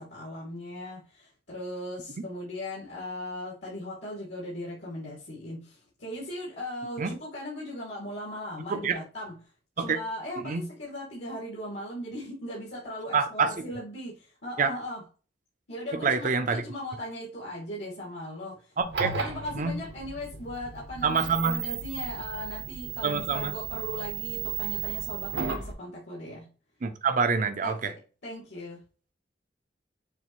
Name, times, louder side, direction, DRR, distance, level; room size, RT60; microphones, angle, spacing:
voice 1, 0.0-9.4 9.8-15.0 15.7-18.7 19.0-26.5 27.6-28.0 28.2-28.8, left 1 dB, 80° left, 2.0 m, -38 dB
voice 2, 8.7-9.0 9.8-10.0 10.4-10.7 13.1-13.6 14.6-14.7 15.9-16.6 18.8-19.1 19.5-19.8 21.0-21.5 23.0-23.5 26.8-27.9, right 5 dB, 45° right, 0.6 m, -26 dB
sound 1, 18.8-25.7, right 7 dB, 70° right, 0.9 m, -35 dB
6.8 x 2.5 x 2.9 m
head